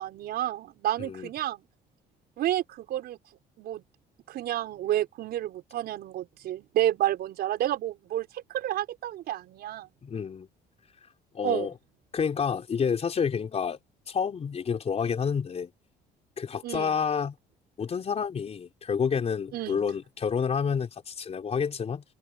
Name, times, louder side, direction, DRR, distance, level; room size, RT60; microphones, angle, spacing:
voice 1, 0.0-1.6 2.4-3.2 3.6-3.8 4.3-9.9 11.4-11.7 16.6-17.0 19.5-19.8, right 13 dB, 70° right, 5.5 m, -30 dB
voice 2, 1.0-1.3 10.0-10.5 11.3-11.7 12.1-13.8 14.1-15.7 16.4-17.3 17.8-22.0, left 6 dB, 40° left, 4.9 m, -29 dB
cardioid pair, 110°, 17 cm